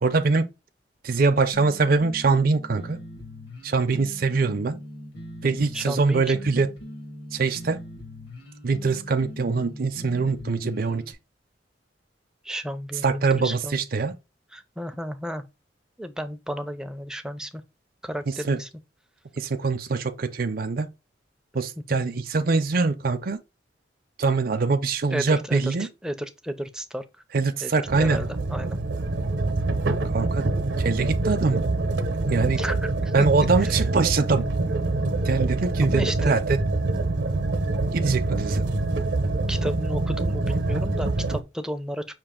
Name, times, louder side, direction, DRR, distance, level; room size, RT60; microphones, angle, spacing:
voice 1, 0.0-0.4 1.0-3.0 3.6-4.8 5.4-6.7 7.3-7.8 8.6-11.0 13.0-14.1 18.4-18.6 19.4-20.9 21.5-23.4 24.2-25.9 27.3-28.2 30.1-30.5 30.8-31.6 32.3-32.6 33.1-34.8 35.2-36.6 37.9-38.7, right 4 dB, 55° right, 0.5 m, -23 dB
sound 1, 1.5-11.1, equal, 65° left, 2.0 m, -41 dB
voice 2, 5.7-6.5 12.4-13.8 14.5-15.5 16.0-17.6 18.0-18.7 21.9-22.1 25.1-27.0 27.6-27.7 28.0-28.8 30.0-30.3 32.6-33.1 33.6-33.8 35.8-36.4 39.5-42.0, equal, 5° right, 0.5 m, -33 dB
sound 2, 27.9-41.4, right 2 dB, 80° right, 0.8 m, -25 dB
5.8 x 2.5 x 3.6 m
head